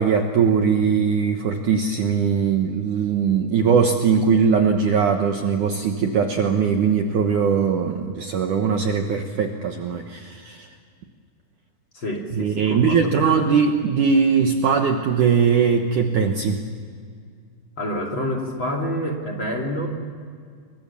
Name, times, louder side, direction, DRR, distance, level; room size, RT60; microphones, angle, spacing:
voice 1, 0.0-10.7 12.3-16.6, right 6 dB, 65° right, 4 dB, 2.1 m, -20 dB
voice 2, 11.9-13.5 17.8-19.9, equal, 35° left, 3 dB, 2.7 m, -28 dB
29.5 x 23.5 x 7.0 m, 2.1 s
omnidirectional pair, 5.0 m